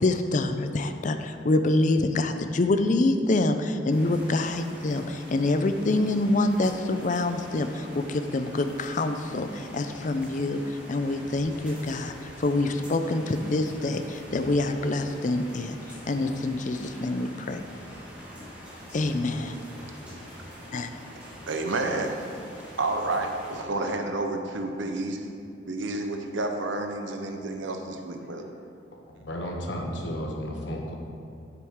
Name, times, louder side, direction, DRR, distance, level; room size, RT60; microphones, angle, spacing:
voice 1, 0.0-10.6 10.9-15.7 16.1-17.6 18.9-19.5 20.7-20.9, left 2 dB, 40° left, 8 dB, 0.5 m, -26 dB
sound 1, 3.9-23.6, equal, 5° right, 2.1 m, -45 dB
voice 2, 21.5-22.2 22.8-25.3 25.7-28.4, right 2 dB, 80° right, 5 dB, 0.8 m, -30 dB
voice 3, 29.1-31.0, equal, 70° left, 0 dB, 1.2 m, -33 dB
9.3 x 7.7 x 3.7 m, 2.6 s
head